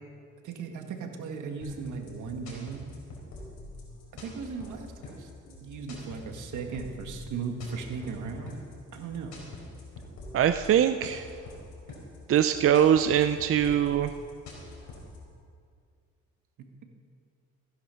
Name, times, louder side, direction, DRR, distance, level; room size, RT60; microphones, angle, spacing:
voice 1, 0.4-2.9 4.2-5.3 5.6-8.6 8.9-9.3, right 5 dB, 75° right, 4 dB, 1.7 m, -37 dB
sound 1, 1.6-15.2, left 2 dB, 70° left, 4.3 m, -45 dB
voice 2, 10.3-11.2 12.3-14.1, right 9 dB, 45° right, 9 dB, 0.5 m, -22 dB
15.5 x 10.0 x 5.7 m, 2.2 s
cardioid pair, 90°, 30 cm